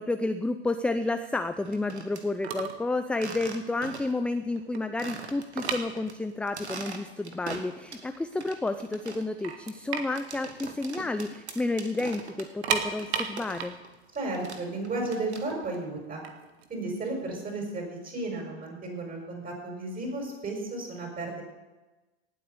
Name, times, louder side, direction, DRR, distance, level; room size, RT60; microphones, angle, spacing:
voice 1, 0.0-13.8, left 2 dB, 5° left, 9 dB, 0.4 m, -31 dB
sound 1, 1.5-2.2 3.1-4.2 4.6-4.7 5.0-6.1 6.5-8.1 8.4-13.9 14.1-15.7, right 4 dB, 90° right, 1.7 m, -42 dB
sound 2, 2.4-2.9 3.2-3.4 3.9-4.0 4.3-6.5 6.8-6.9 7.6-7.7 8.0-8.7 9.1-9.2 9.4-11.4 11.7-11.8 12.4-15.3 16.0-17.8, right 7 dB, 70° right, 1.7 m, -34 dB
voice 2, 14.1-16.2 16.7-21.4, right 2 dB, 25° right, 1 dB, 6.1 m, -34 dB
18.5 x 8.5 x 6.8 m, 1.1 s
hypercardioid pair, 90°, 33 cm